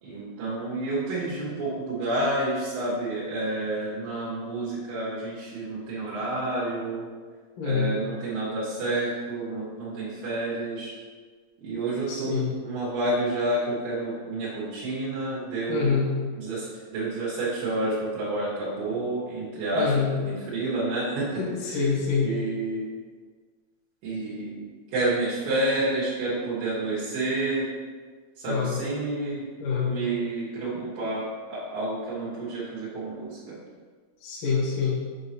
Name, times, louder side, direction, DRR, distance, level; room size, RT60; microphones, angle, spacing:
voice 1, 0.0-7.1 7.6-10.9 11.6-16.0 16.4-19.9 20.3-21.3 21.6-21.8 22.2-22.9 24.0-24.6 24.9-27.7 28.4-29.5 29.9-33.6, right 2 dB, 70° right, -9 dB, 2.9 m, -29 dB
voice 2, 7.6-8.0 12.1-12.5 15.7-16.1 19.7-20.1 21.4-22.3 28.5-28.8 29.6-30.0 34.2-35.0, left 5 dB, 65° left, -5 dB, 2.5 m, -26 dB
7.1 x 4.7 x 2.9 m, 1.5 s
omnidirectional pair, 4.4 m